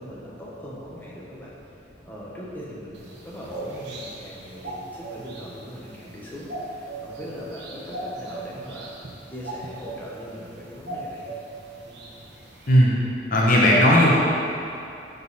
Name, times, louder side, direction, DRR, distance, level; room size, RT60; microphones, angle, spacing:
voice 1, 0.0-1.5 2.0-9.0 9.3-11.4 11.8-12.0, equal, 10° left, -7 dB, 1.2 m, -39 dB
sound 1, 2.9-12.8, right 2 dB, 65° right, 1.1 m, -39 dB
voice 2, 13.3-14.1, equal, 45° left, -4 dB, 1.0 m, -16 dB
12.0 x 4.0 x 4.2 m, 2.6 s
head